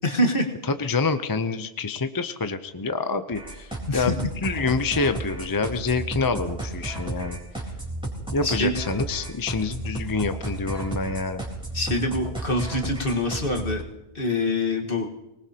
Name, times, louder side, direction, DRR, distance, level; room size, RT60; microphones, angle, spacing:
voice 1, 0.0-0.5 3.9-4.1 8.4-8.7 11.7-13.8 14.2-15.1, left 1 dB, 60° left, 2 dB, 1.8 m, -25 dB
voice 2, 0.7-7.4 8.3-11.4, left 4 dB, 25° left, 9 dB, 0.6 m, -27 dB
sound 1, 3.3-13.8, right 2 dB, 5° right, 3.8 m, -33 dB
25.0 x 19.5 x 2.9 m, 0.99 s
omnidirectional pair, 1.1 m